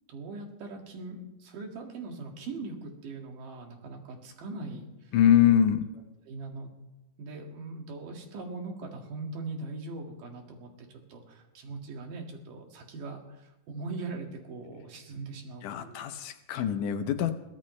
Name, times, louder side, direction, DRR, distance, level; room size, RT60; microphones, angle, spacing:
voice 1, 0.1-4.9 6.3-6.7 7.2-16.0, right 3 dB, 80° right, 2 dB, 3.7 m, -40 dB
voice 2, 5.1-5.8 15.6-17.3, left 10 dB, 75° left, 9 dB, 2.3 m, -24 dB
22.5 x 16.0 x 3.2 m, 0.95 s
omnidirectional pair, 3.8 m